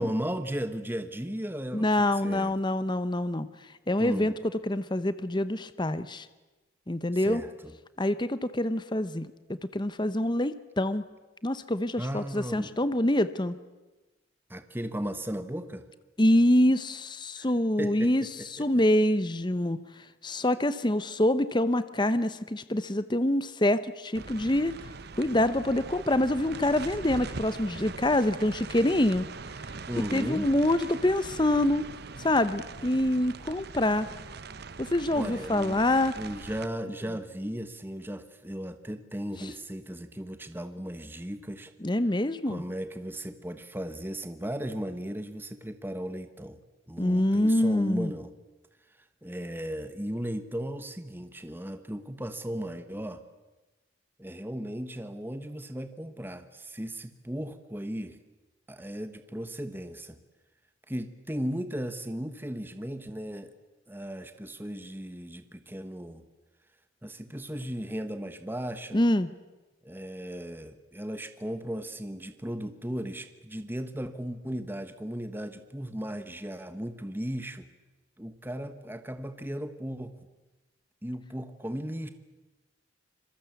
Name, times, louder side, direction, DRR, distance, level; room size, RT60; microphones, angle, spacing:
voice 1, 0.0-2.6 4.0-4.3 7.1-7.8 12.0-12.7 14.5-15.8 17.4-17.5 17.8-18.8 29.9-30.5 35.1-41.7 42.1-46.6 46.9-48.3 48.9-53.2 54.2-58.2 58.7-60.2 60.9-63.5 63.9-66.2 67.0-69.0 69.8-77.7 78.2-80.2 81.0-82.1, equal, 10° right, 9 dB, 1.2 m, -36 dB
voice 2, 1.7-3.5 3.9-4.3 4.7-6.3 6.9-7.4 8.0-9.3 9.7-11.0 11.4-13.5 16.2-18.2 18.5-19.8 20.2-24.7 25.2-29.3 30.0-31.8 32.2-34.1 34.8-36.1 41.8-42.6 47.0-48.1 68.9-69.3, left 1 dB, 20° left, 13 dB, 0.8 m, -25 dB
sound 1, 24.1-36.7, right 4 dB, 50° right, 0.9 m, -42 dB
26.5 x 23.0 x 8.3 m, 1.1 s
head